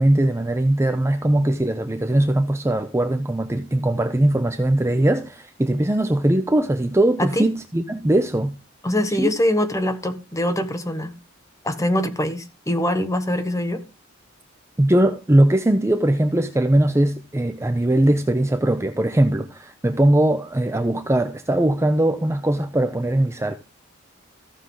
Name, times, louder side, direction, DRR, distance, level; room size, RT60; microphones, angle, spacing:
voice 1, 0.0-8.6 9.2-9.3 14.8-23.5, right 1 dB, 15° right, 0.6 m, -20 dB
voice 2, 8.8-11.1 11.6-13.8, left 1 dB, 15° left, 1.2 m, -23 dB
15.0 x 6.4 x 3.8 m
head